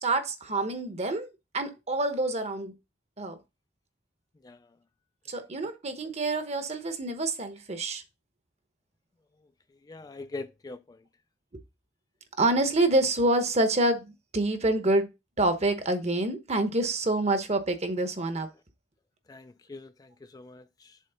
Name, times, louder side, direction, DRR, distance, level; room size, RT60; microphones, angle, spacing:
voice 1, 0.0-1.3 1.5-2.7 3.2-3.4 5.3-8.0 12.4-15.1 15.4-18.5, right 2 dB, 40° right, 1.0 m, -27 dB
voice 2, 4.4-4.8 9.7-11.0 19.3-21.0, left 3 dB, 20° left, 0.3 m, -43 dB
7.5 x 3.2 x 5.6 m
head